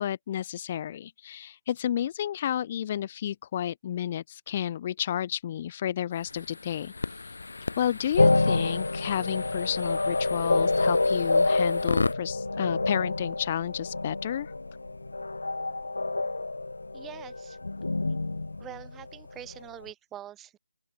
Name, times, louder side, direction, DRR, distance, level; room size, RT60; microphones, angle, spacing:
voice 1, 0.0-6.9 7.8-14.5, left 10 dB, 20° left, 1.0 m, -31 dB
sound 1, 6.1-12.1, left 3 dB, 65° left, 0.8 m, -35 dB
sound 2, 8.2-19.6, left 2 dB, 85° left, 1.3 m, -27 dB
voice 2, 16.9-17.6 18.6-20.6, right 12 dB, 5° right, 1.2 m, -44 dB
open air
figure-of-eight pair, 175°, 0 cm